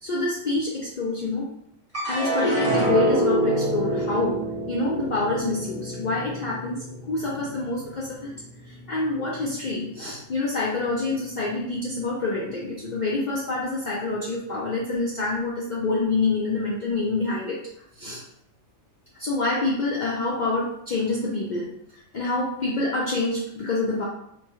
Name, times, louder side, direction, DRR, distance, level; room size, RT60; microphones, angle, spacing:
voice 1, 0.0-1.5 2.0-4.4 4.7-8.3 8.9-17.6 18.0-18.2 19.2-21.7 22.1-24.1, left 3 dB, 70° left, -4 dB, 0.4 m, -26 dB
sound 1, 1.9-8.4 8.8-9.5, right 1 dB, 10° right, 0.9 m, -27 dB
2.9 x 2.2 x 3.0 m, 0.72 s
omnidirectional pair, 1.4 m